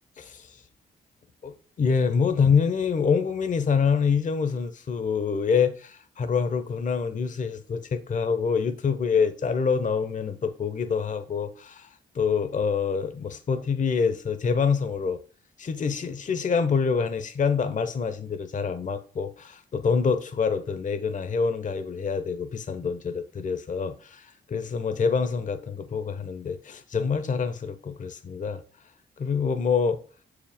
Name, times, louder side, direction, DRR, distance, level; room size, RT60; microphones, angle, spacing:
voice 1, 0.2-0.6 1.4-15.2 15.6-28.6 29.2-30.0, left 5 dB, 45° left, 0.7 m, -26 dB
6.8 x 4.9 x 3.5 m
cardioid pair, 60°, 19 cm